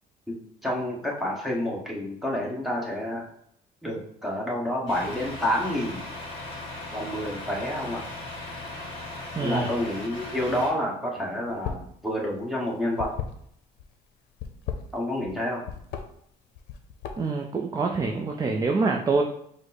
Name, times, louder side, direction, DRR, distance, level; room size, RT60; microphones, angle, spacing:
voice 1, 0.6-3.2 3.8-6.0 6.9-8.0 9.4-13.1 14.9-15.6, left 1 dB, ahead, -3 dB, 1.2 m, -29 dB
Truck, 4.9-10.7, left 2 dB, 35° left, 1.7 m, -38 dB
voice 2, 9.4-9.7 17.2-19.2, right 4 dB, 20° right, 2 dB, 0.4 m, -25 dB
sound 1, 11.5-12.0 12.2-13.8 14.3-15.4 15.7-16.0 16.6-17.4, left 8 dB, 80° left, 0.6 m, -34 dB
5.0 x 2.1 x 4.1 m, 0.69 s
cardioid pair, 110°, 17 cm